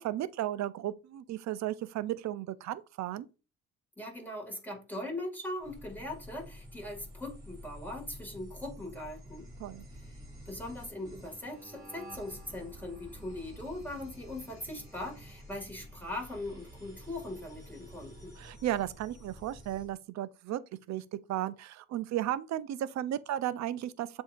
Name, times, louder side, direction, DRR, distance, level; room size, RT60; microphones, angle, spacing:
voice 1, 0.0-3.3 9.6-9.8 18.4-20.6 20.9-21.0 21.3-24.1, right 12 dB, 65° right, 0.5 m, -34 dB
voice 2, 4.0-9.5 9.9-10.0 10.5-18.4, left 1 dB, 5° left, 1.9 m, -40 dB
sound 1, 5.6-19.9, equal, 15° right, 2.4 m, -50 dB
7.3 x 2.7 x 2.4 m
cardioid pair, 90°, 30 cm